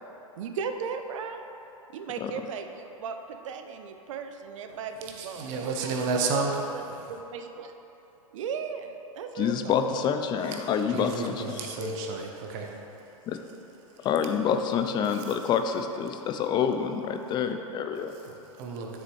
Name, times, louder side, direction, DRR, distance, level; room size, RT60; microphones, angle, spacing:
voice 1, 0.4-1.4 1.9-6.8 7.1-7.8 8.3-9.7, right 6 dB, 65° right, 7 dB, 0.5 m, -37 dB
voice 2, 5.2-7.1 10.6-12.8 15.0-15.2 18.1-19.0, right 4 dB, 45° right, 2 dB, 0.9 m, -32 dB
voice 3, 9.4-12.3 13.3-13.4 14.0-18.1, left 7 dB, 25° left, 7 dB, 0.4 m, -28 dB
7.0 x 6.7 x 3.1 m, 3.0 s
hypercardioid pair, 105°, 18 cm